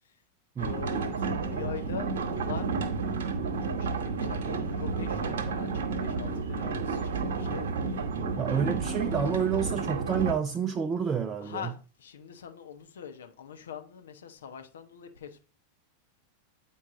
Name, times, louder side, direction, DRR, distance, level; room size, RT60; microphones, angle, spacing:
voice 1, 0.6-2.7 3.6-7.7 11.4-15.4, left 8 dB, 65° left, 1.0 m, -42 dB
sound 1, 0.6-10.3, right 4 dB, 60° right, 1.2 m, -31 dB
voice 2, 8.4-11.7, right 7 dB, 20° right, 0.5 m, -29 dB
8.8 x 4.6 x 3.7 m
figure-of-eight pair, 90°, 0 cm